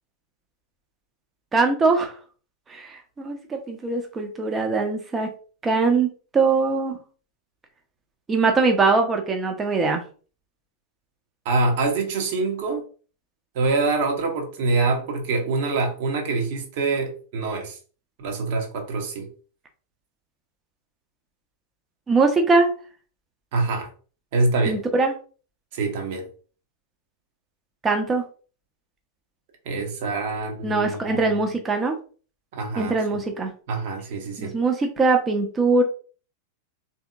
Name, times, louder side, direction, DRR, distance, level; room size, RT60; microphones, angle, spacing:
voice 1, 1.5-2.1 2.7-5.3 5.6-7.0 8.3-10.0 22.1-22.7 24.7-25.1 27.8-28.2 30.6-32.0 32.8-33.5 34.4-35.8, right 3 dB, 20° right, 0.6 m, -22 dB
voice 2, 11.4-12.8 13.5-17.8 18.2-19.3 23.5-23.9 24.3-24.8 25.7-26.2 29.6-31.4 32.5-33.0 33.7-34.5, right 3 dB, 50° right, 0.9 m, -25 dB
3.5 x 2.7 x 2.4 m
figure-of-eight pair, 90°, 0 cm